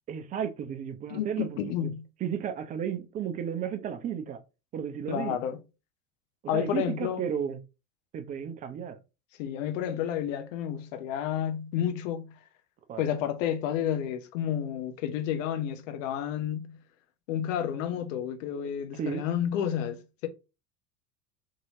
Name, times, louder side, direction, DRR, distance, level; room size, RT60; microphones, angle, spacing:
voice 1, 0.1-1.9 2.2-4.4 4.7-5.4 6.4-7.6 8.1-9.0 12.9-13.1 18.9-19.2, right 8 dB, 20° right, 0.4 m, -33 dB
voice 2, 1.1-2.0 5.1-5.6 6.5-7.2 9.4-12.3 13.0-16.8 17.3-20.3, left 9 dB, 60° left, 0.7 m, -31 dB
2.8 x 2.7 x 2.7 m
hypercardioid pair, 75°, 43 cm